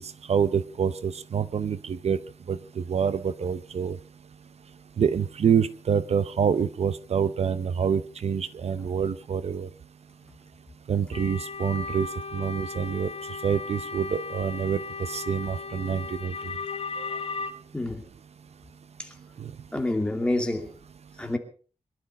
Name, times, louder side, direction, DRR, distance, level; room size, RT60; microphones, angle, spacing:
voice 1, 0.0-2.2 2.5-4.0 5.0-9.7 10.9-16.5 17.0-17.1 19.4-19.5, right 7 dB, 65° right, 0.7 m, -27 dB
sound 1, 11.1-17.5, left 4 dB, 60° left, 2.0 m, -36 dB
voice 2, 19.7-20.7 21.2-21.4, left 1 dB, 10° left, 2.5 m, -27 dB
22.5 x 12.0 x 5.2 m
wide cardioid pair, 175°, 12 cm